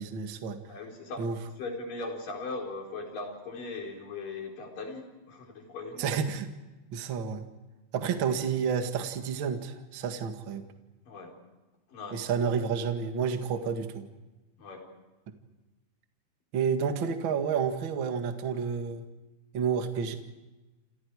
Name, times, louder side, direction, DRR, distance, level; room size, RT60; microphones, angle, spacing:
voice 1, 0.0-0.6 1.2-1.3 6.0-6.5 6.9-7.5 7.9-10.6 12.1-14.1 16.5-19.0 19.5-20.2, right 6 dB, 70° right, 6 dB, 1.1 m, -30 dB
voice 2, 0.7-1.2 1.6-6.1 11.1-11.3 11.9-12.2 13.2-13.3 14.6-14.8, left 3 dB, 50° left, 1 dB, 5.6 m, -39 dB
28.5 x 28.5 x 4.8 m, 1.1 s
omnidirectional pair, 5.3 m